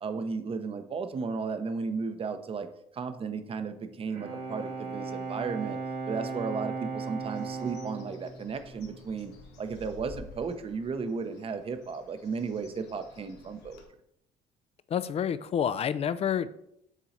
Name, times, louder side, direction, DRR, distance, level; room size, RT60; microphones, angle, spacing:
voice 1, 0.0-2.7 2.9-5.8 6.1-13.8, right 5 dB, 35° right, 9 dB, 0.7 m, -34 dB
Bowed string instrument, 3.8-9.6, right 4 dB, 85° right, 2.0 m, -37 dB
Bird, 7.2-13.8, left 4 dB, 80° left, 1.2 m, -52 dB
voice 2, 14.9-16.7, left 8 dB, 40° left, 15 dB, 0.3 m, -29 dB
7.3 x 3.8 x 4.2 m, 0.76 s
cardioid pair, 110°, 17 cm